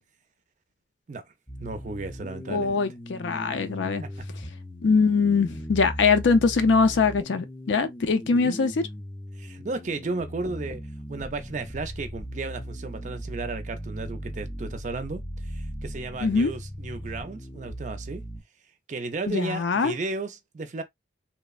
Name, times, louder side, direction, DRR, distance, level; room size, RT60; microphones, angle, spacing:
sound 1, 1.5-18.4, equal, 5° left, 0.6 m, -38 dB
voice 1, 1.6-2.8 4.0-4.1 8.3-8.6 9.4-10.8 11.1-18.2 18.9-20.8, right 3 dB, 40° right, 0.4 m, -34 dB
voice 2, 2.5-4.0 4.8-8.7 16.2-16.5 19.3-20.0, left 4 dB, 75° left, 0.4 m, -22 dB
3.1 x 2.1 x 2.3 m
head